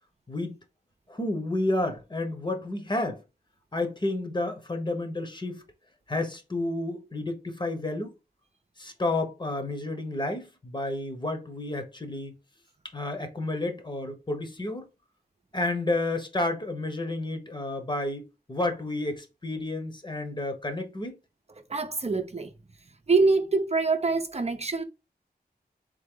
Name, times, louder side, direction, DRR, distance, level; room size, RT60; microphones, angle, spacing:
voice 1, 1.1-3.2 3.7-5.6 6.1-8.1 8.8-12.3 12.9-14.9 15.5-18.2 18.5-21.2, left 2 dB, 30° left, 1.1 m, -30 dB
voice 2, 21.7-22.5 23.1-24.8, right 3 dB, 40° right, 0.7 m, -24 dB
3.8 x 3.8 x 3.8 m
wide cardioid pair, 95°, 17 cm